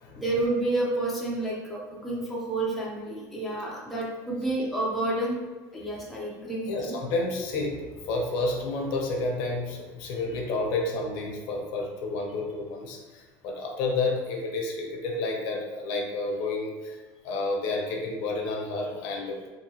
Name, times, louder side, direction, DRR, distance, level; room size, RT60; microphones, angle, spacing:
voice 1, 0.2-5.4 5.7-7.0, right 2 dB, ahead, -5 dB, 0.4 m, -29 dB
voice 2, 6.7-17.0 17.2-19.5, left 2 dB, 65° left, 0 dB, 0.6 m, -30 dB
2.8 x 2.7 x 2.7 m, 1.2 s
cardioid pair, 170°, 9 cm